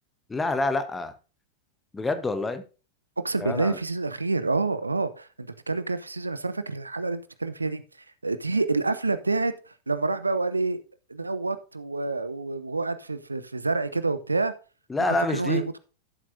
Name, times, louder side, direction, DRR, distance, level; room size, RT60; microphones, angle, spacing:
voice 1, 0.3-1.1 1.9-2.6 3.4-3.8 14.9-15.6, left 2 dB, 10° left, 10 dB, 1.1 m, -27 dB
voice 2, 3.2-7.8 8.2-9.5 9.9-10.8 11.1-14.5 15.3-15.8, right 3 dB, 80° right, 13 dB, 0.7 m, -27 dB
12.5 x 7.5 x 2.7 m, 0.33 s
figure-of-eight pair, 90°, 0 cm